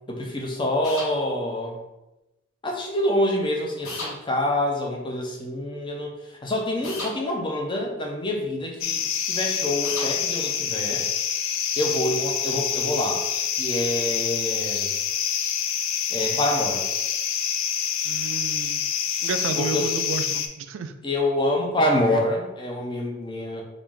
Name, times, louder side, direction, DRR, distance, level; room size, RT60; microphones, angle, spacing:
voice 1, 0.1-1.8 2.6-6.1 6.4-9.0 9.3-11.1 11.8-13.2 13.6-14.9 16.1-16.8 19.6-19.9 21.0-23.6, left 1 dB, 25° left, 0 dB, 0.5 m, -26 dB
sound 1, 0.8-1.1 3.8-4.1 6.8-7.1 9.8-10.1, left 2 dB, 90° left, 1.0 m, -33 dB
sound 2, 8.8-20.5, left 8 dB, 70° left, 0.3 m, -27 dB
voice 2, 18.0-18.8 19.2-20.9, right 5 dB, 65° right, 9 dB, 0.3 m, -31 dB
3.3 x 2.5 x 3.6 m, 0.98 s
head